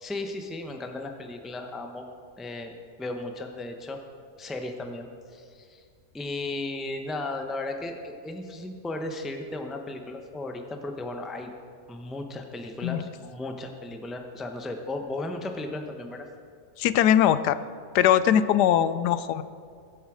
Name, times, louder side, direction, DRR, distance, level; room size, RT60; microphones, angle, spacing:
voice 1, 0.0-2.1 2.4-4.0 4.4-5.8 6.1-11.5 11.9-16.3, left 2 dB, ahead, 4 dB, 0.6 m, -35 dB
voice 2, 16.8-17.6 17.9-19.4, left 10 dB, 85° left, 14 dB, 1.2 m, -21 dB
21.5 x 8.2 x 5.0 m, 2.2 s
omnidirectional pair, 1.7 m